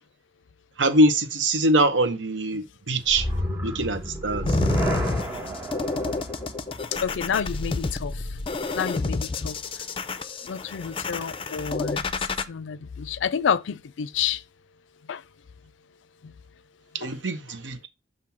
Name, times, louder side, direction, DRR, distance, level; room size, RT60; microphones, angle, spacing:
voice 1, 0.8-3.3 3.6-4.5 16.9-17.9, right 1 dB, 85° right, 0.9 m, -23 dB
sound 1, 3.1-8.4, equal, 15° right, 1.1 m, -30 dB
sound 2, 4.5-12.4, left 3 dB, 30° left, 0.4 m, -30 dB
voice 2, 6.9-8.3 8.7-9.6 10.4-14.4 15.1-15.2 16.2-16.3 17.0-17.1, left 7 dB, 85° left, 0.4 m, -29 dB
7.1 x 2.7 x 5.8 m
head